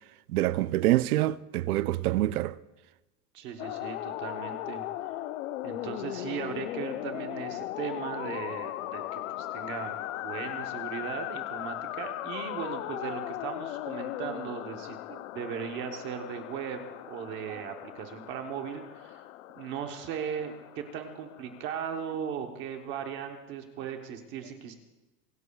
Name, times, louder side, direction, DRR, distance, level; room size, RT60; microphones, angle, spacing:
voice 1, 0.3-2.5 17.5-17.6, right 15 dB, 70° right, 0.6 m, -26 dB
voice 2, 3.3-4.8 5.6-15.0 15.3-16.8 17.1-19.2 19.6-24.7, right 8 dB, 25° right, 0.9 m, -37 dB
sound 1, 3.6-21.7, left 14 dB, 55° left, 0.5 m, -38 dB
25.0 x 16.5 x 2.3 m
supercardioid pair, 175°, 47 cm